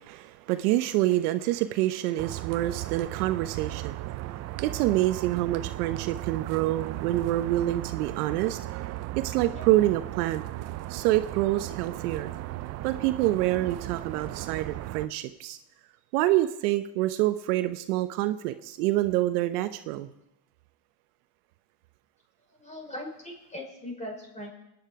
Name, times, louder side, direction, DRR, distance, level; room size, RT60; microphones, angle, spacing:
voice 1, 0.0-4.0 4.6-8.6 9.2-10.4 10.9-12.3 12.8-15.6 16.1-20.1, right 15 dB, 65° right, 10 dB, 1.0 m, -26 dB
sound 1, 2.2-15.1, right 16 dB, 35° right, 0.6 m, -36 dB
voice 2, 22.5-24.5, left 1 dB, 15° left, 0 dB, 5.6 m, -40 dB
26.5 x 10.0 x 4.8 m, 0.87 s
supercardioid pair, 120°, 49 cm